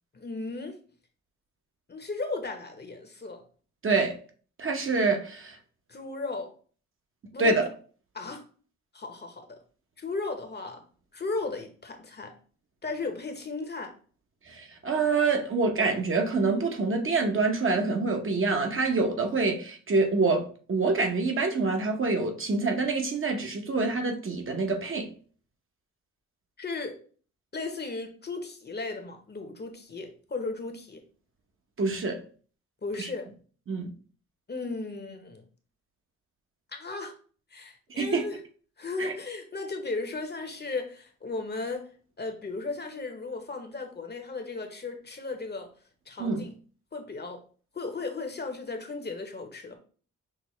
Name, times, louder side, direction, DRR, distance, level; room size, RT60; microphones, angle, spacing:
voice 1, 0.1-0.8 1.9-3.4 5.9-6.5 7.3-7.6 8.1-8.4 8.9-9.6 10.0-10.8 11.1-12.3 12.8-13.9 26.6-27.0 27.5-31.0 32.8-33.3 34.5-35.4 36.7-37.1 37.5-38.4 38.8-41.9 42.2-45.7 46.1-46.5 46.9-47.4 47.7-49.8, left 3 dB, 35° left, 0.9 m, -35 dB
voice 2, 3.8-4.2 4.6-5.6 7.4-7.6 14.5-25.1 31.8-32.2 33.0-33.1 33.7-33.9 38.0-38.3 39.0-39.1 46.2-46.4, right 3 dB, 45° right, 0.9 m, -26 dB
5.8 x 2.1 x 3.1 m
cardioid pair, 65°, 30 cm